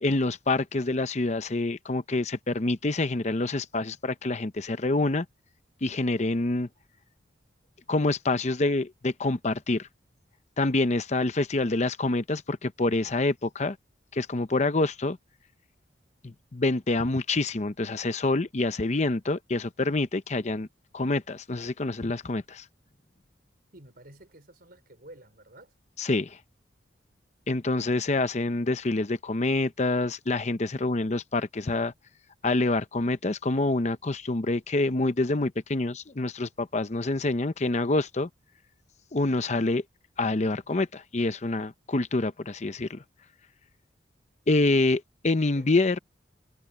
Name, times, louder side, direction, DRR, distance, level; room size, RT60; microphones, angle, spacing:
voice 1, 0.0-5.3 5.8-6.7 7.9-9.9 10.6-13.8 14.1-15.2 16.2-20.7 20.9-22.6 26.0-26.4 27.5-31.9 32.4-38.3 39.1-39.8 40.2-43.0 44.5-46.0, left 2 dB, 40° left, 0.7 m, -26 dB
voice 2, 23.7-25.8 45.6-45.7, right 1 dB, 55° right, 4.5 m, -51 dB
head